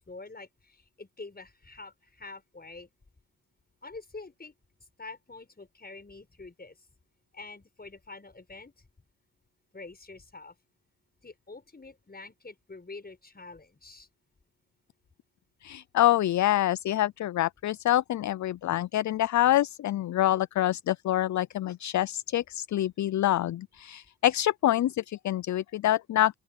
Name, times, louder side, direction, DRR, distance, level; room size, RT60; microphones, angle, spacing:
voice 1, 0.0-2.9 3.8-4.5 5.0-6.8 7.3-8.9 9.7-10.5 11.2-14.1, left 3 dB, 25° left, 6.5 m, -46 dB
voice 2, 15.6-26.3, left 13 dB, 55° left, 0.6 m, -26 dB
open air
supercardioid pair, 60°, 35 cm